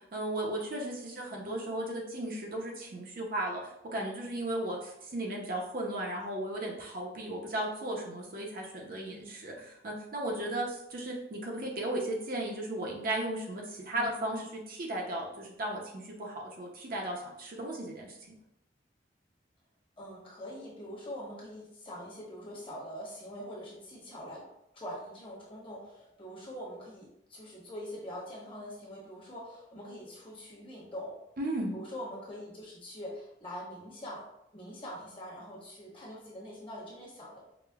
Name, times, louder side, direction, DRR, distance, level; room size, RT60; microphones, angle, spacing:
voice 1, 0.1-18.2 31.4-31.7, right 1 dB, 50° right, -1 dB, 0.6 m, -35 dB
voice 2, 9.1-9.4 13.9-14.1 20.0-24.4 24.7-31.2 31.7-37.4, equal, 30° left, -5 dB, 1.1 m, -44 dB
4.8 x 2.1 x 2.3 m, 0.80 s
head